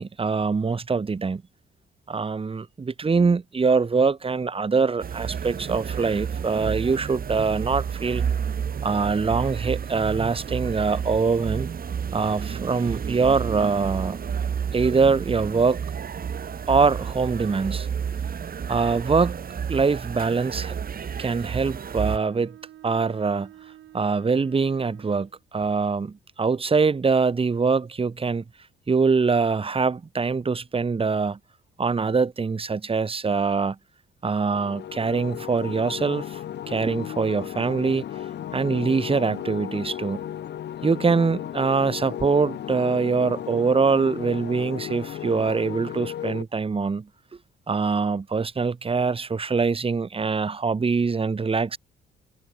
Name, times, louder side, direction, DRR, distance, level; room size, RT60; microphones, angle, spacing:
voice 1, 0.0-1.4 2.1-8.2 8.8-11.7 12.1-14.2 14.7-15.8 16.7-17.9 18.7-19.4 19.7-20.7 21.2-22.6 22.8-23.5 23.9-28.4 28.9-31.4 31.8-33.8 34.2-36.4 36.7-38.0 38.5-40.2 40.8-47.1 47.7-51.8, right 4 dB, 30° right, 1.6 m, -23 dB
sound 1, 5.0-22.2, right 7 dB, 45° right, 2.8 m, -31 dB
Bowed string instrument, 21.4-25.4, right 13 dB, 75° right, 2.4 m, -49 dB
sound 2, 34.5-46.4, left 10 dB, 60° left, 1.0 m, -35 dB
cardioid pair, 90°, 20 cm